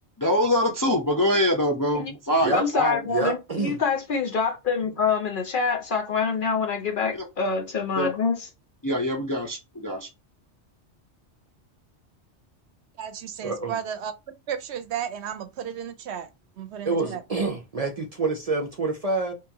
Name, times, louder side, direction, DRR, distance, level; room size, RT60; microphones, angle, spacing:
voice 1, 0.2-3.0 8.0-8.1 8.8-10.1, left 1 dB, 25° left, 0.4 m, -24 dB
voice 2, 2.5-8.5, left 5 dB, 55° left, 0.7 m, -26 dB
voice 3, 3.1-3.8 13.4-13.8 16.8-19.3, right 3 dB, 40° right, 0.6 m, -27 dB
voice 4, 13.0-14.1 14.5-16.3 16.6-17.2, right 9 dB, 70° right, 0.8 m, -33 dB
3.1 x 2.9 x 3.5 m
omnidirectional pair, 1.2 m